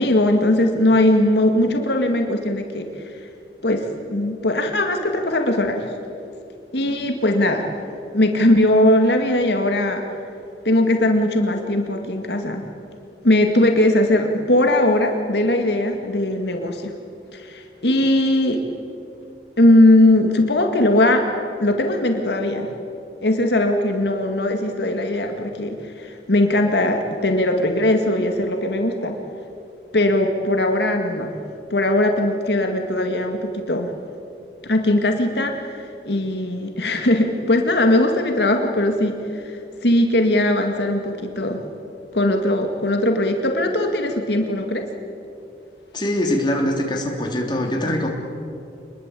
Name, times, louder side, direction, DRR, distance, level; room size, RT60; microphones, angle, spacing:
voice 1, 0.0-3.1 3.6-5.9 6.7-7.7 8.1-10.0 10.6-12.7 13.2-16.9 17.3-18.6 19.6-21.3 21.6-22.7 23.2-29.1 29.9-31.3 31.7-33.9 34.6-41.6 42.1-44.9, left 1 dB, 75° left, 4 dB, 2.1 m, -19 dB
voice 2, 45.9-48.1, left 1 dB, 25° left, 1 dB, 3.3 m, -22 dB
27.5 x 21.5 x 8.4 m, 2.7 s
head